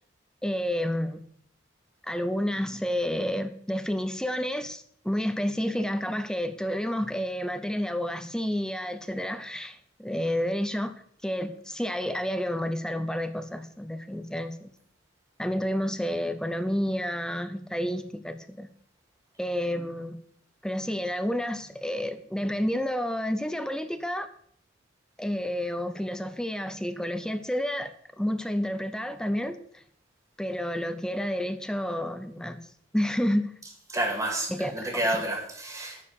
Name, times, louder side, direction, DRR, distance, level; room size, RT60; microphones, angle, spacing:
voice 1, 0.4-1.2 2.0-10.9 11.2-14.7 15.4-18.7 19.4-20.2 20.6-24.3 25.2-29.6 30.4-32.6 32.9-33.5 34.5-35.0, equal, 5° left, 0.6 m, -30 dB
voice 2, 33.9-36.0, right 1 dB, 15° right, 2.1 m, -29 dB
9.7 x 4.9 x 6.8 m
head